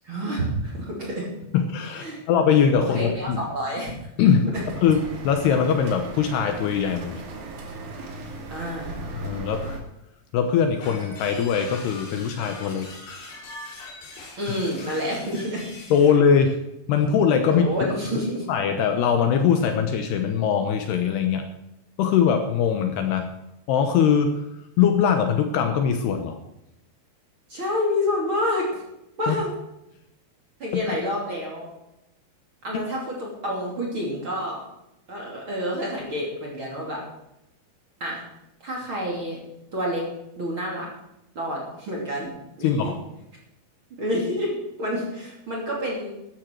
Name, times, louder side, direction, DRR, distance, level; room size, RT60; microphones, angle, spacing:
voice 1, 0.0-1.3 2.0-2.2 2.8-4.0 4.5-4.6 8.5-9.2 14.4-15.7 17.5-18.5 27.5-28.8 29.2-29.5 30.6-31.7 32.6-34.6 35.1-37.0 38.0-38.2 38.6-39.4 39.7-40.1 40.4-40.9 41.3-42.9 44.0-46.1, equal, 35° right, -3 dB, 2.9 m, -28 dB
voice 2, 1.5-3.5 4.2-7.2 9.1-9.8 10.3-12.9 15.9-16.6 16.9-17.7 18.5-21.5 22.0-23.3 23.7-24.4 24.8-26.4 29.3-29.4 30.9-31.0 32.7-32.8 42.6-43.0, left 7 dB, 75° left, 6 dB, 2.8 m, -21 dB
sound 1, 4.5-9.8, right 2 dB, 60° right, 3.6 m, -37 dB
sound 2, 10.8-16.0, left 2 dB, 55° left, 5.9 m, -41 dB
13.0 x 13.0 x 4.6 m, 0.87 s
omnidirectional pair, 5.3 m